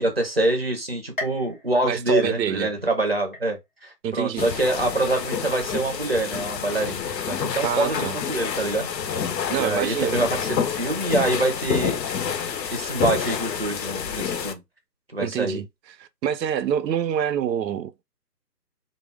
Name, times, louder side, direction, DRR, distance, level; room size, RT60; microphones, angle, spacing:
voice 1, 0.0-9.2 9.5-12.0 12.7-14.6 15.1-15.6, right 2 dB, 40° right, 0.5 m, -25 dB
sound 1, 1.2-2.9 3.3-3.9 4.4-4.5 5.5-5.6, left 2 dB, 30° left, 0.6 m, -38 dB
voice 2, 1.8-2.7 4.0-4.5 7.6-8.2 9.5-10.2 15.2-15.7 16.0-18.0, right 9 dB, 90° right, 0.5 m, -26 dB
sound 2, 4.4-14.5, left 7 dB, 85° left, 0.6 m, -28 dB
2.0 x 2.0 x 3.3 m
hypercardioid pair, 165°, 49 cm